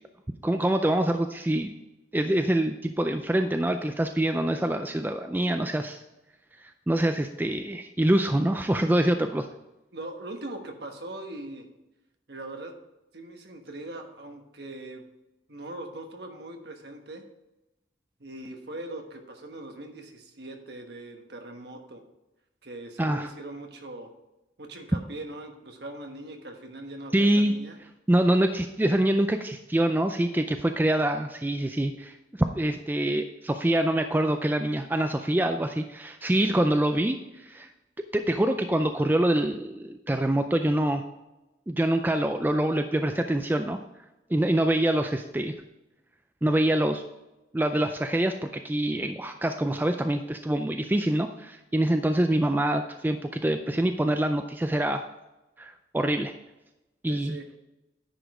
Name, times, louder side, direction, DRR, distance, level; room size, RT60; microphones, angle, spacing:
voice 1, 0.4-1.7 2.1-6.0 6.6-9.5 23.0-23.3 27.1-27.5 28.1-32.1 32.5-37.7 38.1-41.0 41.7-43.8 44.3-45.5 46.4-47.0 47.5-55.0 55.6-56.3 57.0-57.4, right 1 dB, 10° right, 6 dB, 0.3 m, -25 dB
voice 2, 9.9-11.7 12.3-12.7 13.1-15.0 15.5-17.2 18.2-22.0 22.6-24.1 24.6-27.8 57.1-57.5, right 1 dB, 55° right, 4 dB, 1.2 m, -41 dB
9.9 x 5.1 x 4.8 m, 0.97 s
head